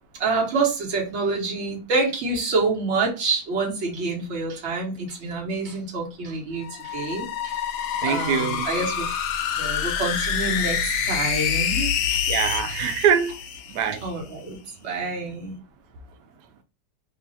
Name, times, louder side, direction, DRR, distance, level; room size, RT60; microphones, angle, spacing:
voice 1, 0.2-7.7 8.0-9.1 9.6-12.2 14.0-15.5, right 3 dB, 45° right, 1.2 m, -27 dB
sound 1, 6.6-14.1, left 7 dB, 75° left, 1.1 m, -27 dB
voice 2, 8.0-8.7 12.3-13.3 13.7-14.1, right 8 dB, 75° right, 1.1 m, -23 dB
3.1 x 2.4 x 4.0 m
omnidirectional pair, 1.9 m